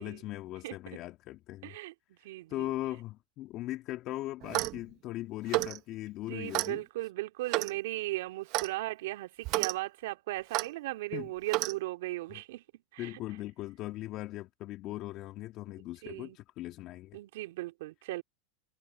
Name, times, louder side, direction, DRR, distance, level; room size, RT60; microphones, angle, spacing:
voice 1, 0.0-1.7 2.5-6.8 11.1-11.3 12.3-12.4 13.0-17.2, left 16 dB, 50° left, 2.2 m, -39 dB
voice 2, 1.6-2.7 6.3-12.6 12.9-13.2 16.0-16.4 17.1-18.2, right 18 dB, 70° right, 3.1 m, -37 dB
Clock, 4.4-4.8 5.5-5.8 6.5-6.7 7.5-7.8 8.5-8.7 9.4-9.7 10.5-10.7 11.5-11.7, right 19 dB, 55° right, 1.1 m, -30 dB
hypercardioid pair, 105°, 0 cm